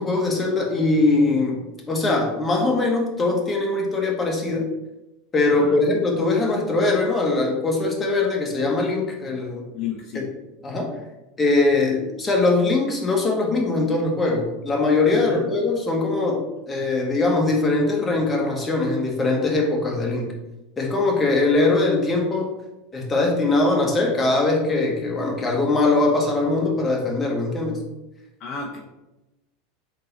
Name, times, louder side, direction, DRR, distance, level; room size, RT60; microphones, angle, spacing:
voice 1, 0.0-4.7 5.3-9.7 10.1-10.2 10.6-10.9 11.4-20.3 20.8-22.5 22.9-27.8, left 3 dB, 20° left, 0 dB, 1.1 m, -21 dB
voice 2, 5.5-5.8 9.7-10.3 15.1-15.5 28.4-28.8, left 6 dB, 45° left, -1 dB, 0.7 m, -32 dB
3.8 x 2.8 x 4.0 m, 0.97 s
figure-of-eight pair, 85°, 0 cm